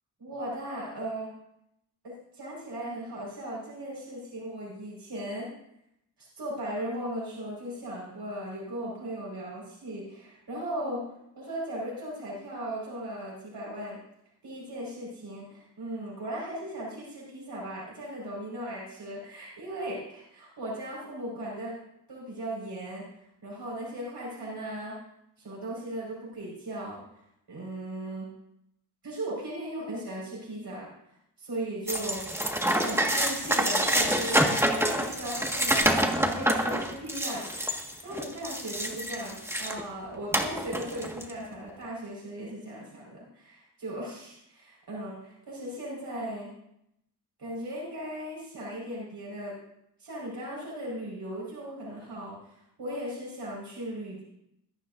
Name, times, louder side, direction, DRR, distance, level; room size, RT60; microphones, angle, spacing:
voice 1, 0.2-1.3 2.0-5.5 6.4-11.0 11.4-14.0 14.4-21.7 22.1-23.0 23.4-24.9 25.4-27.0 27.5-28.3 29.0-30.9 31.4-32.2 32.8-37.7 38.0-46.5 47.4-49.5 50.0-52.5 52.8-54.2, right 1 dB, 80° right, -5 dB, 5.2 m, -37 dB
sound 1, 31.9-39.8 40.3-41.3, equal, 5° right, 1.7 m, -27 dB
21.5 x 13.0 x 2.6 m, 0.81 s
wide cardioid pair, 85°, 39 cm